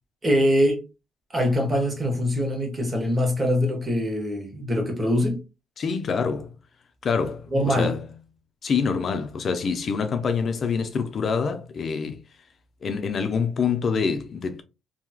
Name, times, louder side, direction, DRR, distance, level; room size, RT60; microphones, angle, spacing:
voice 1, 0.2-0.8 1.3-5.4 7.5-7.9, equal, 25° right, 1.2 m, -23 dB
voice 2, 5.8-6.5 7.0-8.0 8.6-12.2 12.8-14.6, left 5 dB, 50° left, 0.4 m, -26 dB
2.8 x 2.7 x 2.3 m
cardioid pair, 90°, 0 cm